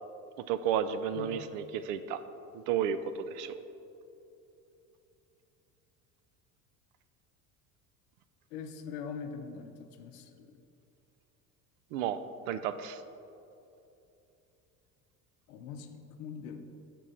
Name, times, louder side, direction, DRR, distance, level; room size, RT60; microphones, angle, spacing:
voice 1, 0.5-2.2 2.7-3.6 11.9-12.2 12.5-13.0, right 8 dB, 65° right, 12 dB, 0.5 m, -32 dB
voice 2, 1.1-1.5 8.5-10.6 15.5-16.6, left 6 dB, 75° left, 7 dB, 0.7 m, -43 dB
6.2 x 4.6 x 3.9 m, 2.8 s
hypercardioid pair, 70°, 47 cm